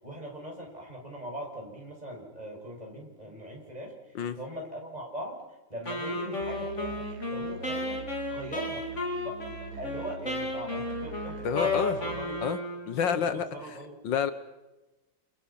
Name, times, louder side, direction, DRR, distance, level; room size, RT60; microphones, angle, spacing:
voice 1, 0.0-3.9 4.4-5.4 5.7-8.0 8.3-8.9 9.2-9.4 9.8-11.7 12.0-12.3 13.0-14.0, equal, 20° right, -1 dB, 6.9 m, -40 dB
Wind instrument woodwind instrument, 5.9-13.0, left 2 dB, 40° left, 4.5 m, -33 dB
Musical instrument, 6.4-12.3, right 6 dB, 50° right, 1.4 m, -44 dB
voice 2, 11.4-12.0 12.4-12.6 12.9-13.8 14.0-14.3, left 7 dB, 75° left, 11 dB, 1.9 m, -28 dB
29.0 x 28.0 x 5.9 m, 1.1 s
omnidirectional pair, 2.0 m